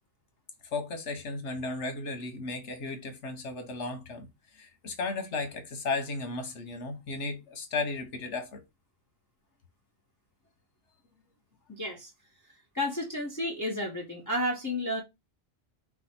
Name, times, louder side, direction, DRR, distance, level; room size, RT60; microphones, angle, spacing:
voice 1, 0.7-4.3 4.5-8.6, left 3 dB, 80° left, 1.4 m, -35 dB
voice 2, 11.7-12.1 12.7-15.0, left 1 dB, 15° left, 0.9 m, -31 dB
4.9 x 2.3 x 4.2 m
omnidirectional pair, 1.2 m